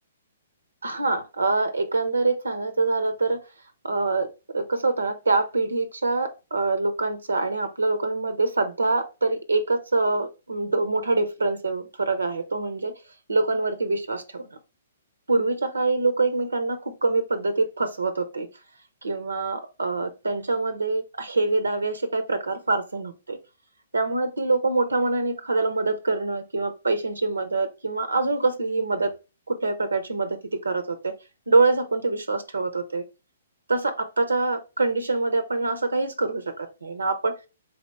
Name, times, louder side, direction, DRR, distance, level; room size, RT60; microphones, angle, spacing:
voice 1, 0.8-3.4 3.8-4.3 4.5-12.9 13.3-14.6 15.3-18.5 19.0-23.4 23.9-29.1 29.5-31.1 31.5-33.0 33.7-37.4, right 3 dB, 85° right, 9 dB, 0.6 m, -25 dB
4.1 x 2.8 x 3.3 m, 0.28 s
figure-of-eight pair, 125°, 0 cm